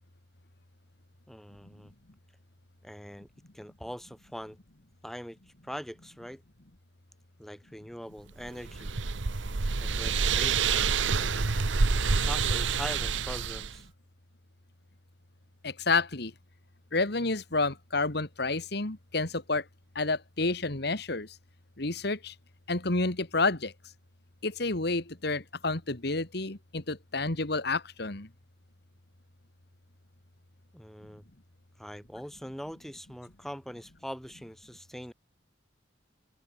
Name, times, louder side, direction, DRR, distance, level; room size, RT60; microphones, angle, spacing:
voice 1, 1.3-1.9 2.8-3.3 3.5-4.6 5.0-6.4 7.4-8.9 9.8-11.3 12.1-13.8 30.7-31.3 31.8-35.1, equal, ahead, 4.0 m, -42 dB
sound 1, 8.4-13.8, right 5 dB, 80° right, 1.0 m, -27 dB
voice 2, 15.6-16.3 16.9-19.7 20.0-21.4 21.8-22.3 22.7-23.7 24.4-28.3, left 3 dB, 60° left, 2.0 m, -29 dB
head